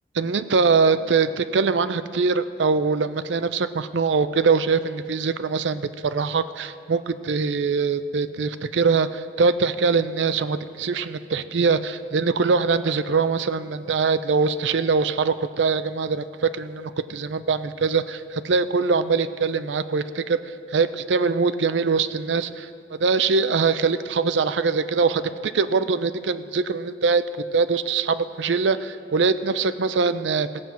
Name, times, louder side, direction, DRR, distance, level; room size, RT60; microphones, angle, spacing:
voice 1, 0.1-27.2 27.5-30.5, right 4 dB, 85° right, 12 dB, 0.5 m, -23 dB
16.5 x 7.6 x 5.7 m, 2.4 s
head